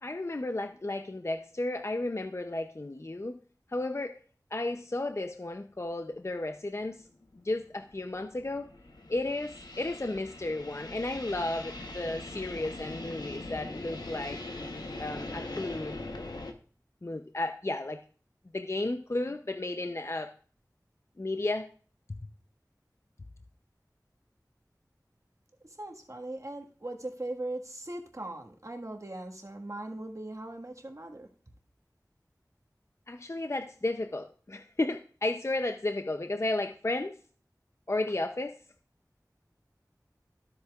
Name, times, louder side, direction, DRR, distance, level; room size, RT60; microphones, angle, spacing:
voice 1, 0.0-3.4 3.7-4.2 4.5-7.1 7.3-8.7 9.1-14.4 15.0-16.0 17.0-18.0 18.5-20.3 21.2-21.7 33.1-37.2 37.9-38.6, left 2 dB, 40° left, 7 dB, 0.6 m, -33 dB
sound 1, 6.2-6.3 6.8-16.5, left 2 dB, 80° left, 1.0 m, -41 dB
voice 2, 25.8-31.3, right 1 dB, 50° right, 2 dB, 1.6 m, -39 dB
13.0 x 7.9 x 2.4 m, 0.43 s
wide cardioid pair, 45°, 7 cm